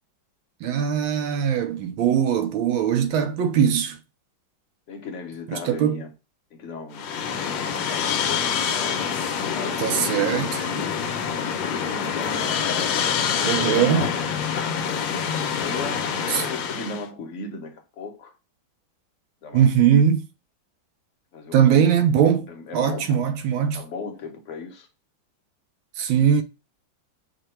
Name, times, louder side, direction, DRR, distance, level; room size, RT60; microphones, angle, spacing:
voice 1, 0.6-4.0 5.5-6.0 9.8-10.6 13.4-14.0 16.3-16.4 19.5-20.2 21.5-22.5 22.7-23.8 26.0-26.4, right 8 dB, 85° right, 1.4 m, -20 dB
voice 2, 4.9-6.1 6.5-7.1 7.4-9.1 9.6-11.0 11.5-12.6 13.6-14.4 15.6-18.3 19.4-19.7 21.3-21.6 22.5-23.2 23.7-24.9, left 3 dB, 50° left, 1.0 m, -37 dB
sound 1, 6.9-17.1, left 7 dB, 75° left, 1.3 m, -26 dB
5.2 x 2.2 x 4.3 m
omnidirectional pair, 2.2 m